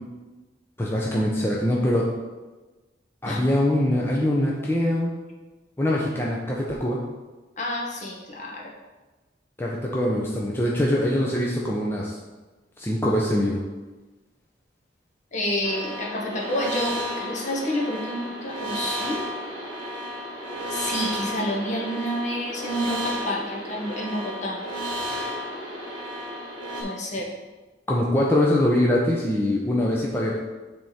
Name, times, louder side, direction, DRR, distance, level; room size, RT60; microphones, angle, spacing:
voice 1, 0.8-2.1 3.2-5.1 5.8-7.0 9.6-12.1 12.8-13.6 27.9-30.4, left 1 dB, 15° left, -3 dB, 0.7 m, -23 dB
voice 2, 7.6-8.7 15.3-19.3 20.7-24.6 26.8-27.3, equal, 40° left, -2 dB, 1.3 m, -29 dB
sound 1, 15.6-26.8, equal, 25° right, 2.2 m, -33 dB
9.2 x 3.6 x 4.3 m, 1.2 s
head